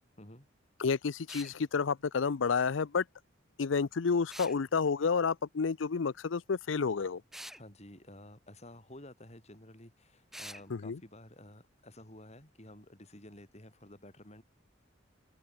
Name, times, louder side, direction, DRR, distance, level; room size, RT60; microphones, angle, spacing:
voice 1, 0.2-0.5 7.5-14.4, left 1 dB, 35° left, 6.8 m, -52 dB
voice 2, 0.8-3.0 3.6-7.2 10.7-11.0, left 5 dB, 85° left, 0.6 m, -30 dB
sound 1, 1.3-1.6 4.3-4.6 7.3-7.6 10.3-10.6, equal, ahead, 2.2 m, -45 dB
open air
head